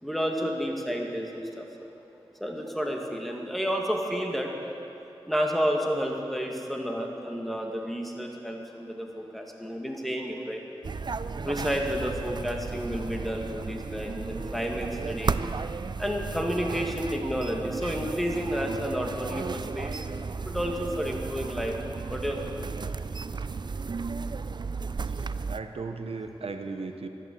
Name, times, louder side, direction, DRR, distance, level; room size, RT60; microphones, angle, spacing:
voice 1, 0.0-1.7 2.4-4.5 5.3-10.6 11.4-15.4 16.0-20.0 20.4-22.5, equal, ahead, 1 dB, 2.1 m, -31 dB
sound 1, 10.8-25.6, right 4 dB, 45° right, 0.4 m, -34 dB
voice 2, 25.1-27.1, right 4 dB, 75° right, 6 dB, 0.9 m, -36 dB
14.0 x 11.5 x 7.9 m, 2.8 s
wide cardioid pair, 60°, 10 cm